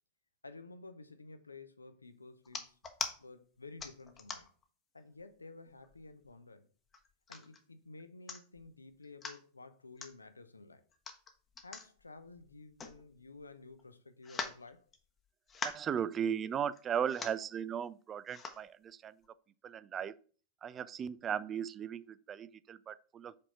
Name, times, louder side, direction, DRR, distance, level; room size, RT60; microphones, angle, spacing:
voice 1, 0.4-2.8 3.2-4.5 4.9-6.7 7.3-10.9 11.6-14.9, left 3 dB, 80° left, 0.6 m, -52 dB
sound 1, 2.4-3.1 3.8-4.6 5.2-5.3 5.7-6.3 6.9-7.6 8.0-8.1 8.3-8.7 9.0-9.4 10.0-10.1 10.9-13.4 13.7-13.8 14.2-15.2 15.5-15.9 16.7-16.8 17.1-17.5 18.3-18.6 19.2-19.3, left 5 dB, 20° left, 0.9 m, -42 dB
voice 2, 15.6-19.1 19.6-20.1 20.6-23.4, right 8 dB, 25° right, 0.3 m, -37 dB
5.2 x 4.2 x 5.2 m
figure-of-eight pair, 90°, 0 cm